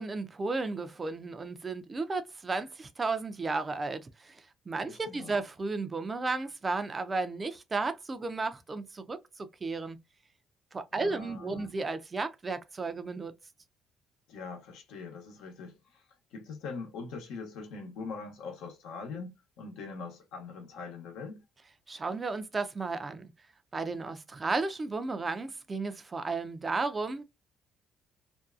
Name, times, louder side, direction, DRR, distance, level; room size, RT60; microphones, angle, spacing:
voice 1, 0.0-10.0 10.7-13.3 21.9-23.3 23.7-27.2, right 3 dB, 30° right, 0.5 m, -34 dB
voice 2, 4.8-5.3 10.9-11.7 14.3-16.0 16.3-21.4, left 4 dB, 80° left, 0.9 m, -42 dB
2.6 x 2.3 x 2.3 m
cardioid pair, 90°, 0 cm